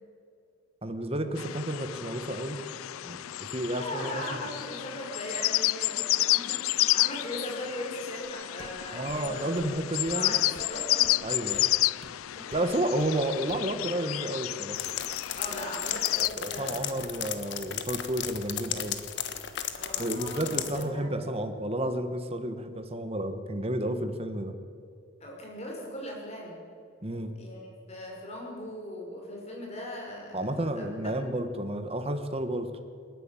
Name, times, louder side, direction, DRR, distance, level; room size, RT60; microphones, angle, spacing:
voice 1, 0.8-2.6 3.0-3.2 3.5-4.2 8.9-10.3 11.2-11.7 12.5-14.8 16.2-19.0 20.0-24.5 27.0-27.3 30.3-32.7, right 1 dB, 30° right, 8 dB, 1.4 m, -31 dB
sound 1, 1.4-16.3, left 16 dB, 85° left, 0.4 m, -30 dB
voice 2, 3.8-9.5 10.1-11.1 11.5-11.7 12.4-12.5 15.4-17.2 19.8-21.3 25.2-26.6 27.3-27.6 27.9-30.4 30.8-30.9, left 1 dB, 30° left, -1 dB, 5.3 m, -39 dB
sound 2, 8.2-8.3 8.6-8.8 9.1-9.2 9.6-9.8 10.1-10.2 10.5-10.7 11.0-11.2 11.5-11.6 12.0-12.1 12.5-12.7 13.0-13.2 13.5-13.7, right 1 dB, 70° right, 2.3 m, -50 dB
sound 3, 14.8-20.8, left 9 dB, 55° left, 1.4 m, -35 dB
28.0 x 11.0 x 9.0 m, 2.4 s
head